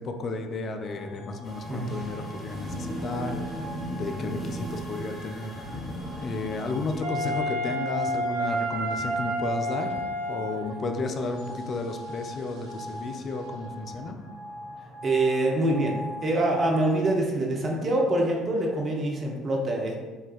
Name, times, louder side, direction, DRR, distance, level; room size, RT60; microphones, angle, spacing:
voice 1, 0.0-5.6 6.2-10.0 10.3-14.2, left 3 dB, 40° left, 5 dB, 0.3 m, -33 dB
sound 1, 0.8-17.2, equal, 85° left, 0.8 m, -43 dB
sound 2, 1.4-7.0, right 1 dB, 10° left, 0.8 m, -36 dB
Wind instrument woodwind instrument, 7.0-10.8, equal, 75° right, 0.3 m, -29 dB
voice 2, 15.0-16.0 16.2-20.0, right 1 dB, 35° right, 0 dB, 0.6 m, -25 dB
4.3 x 2.2 x 2.3 m, 1.3 s
figure-of-eight pair, 55°, 0 cm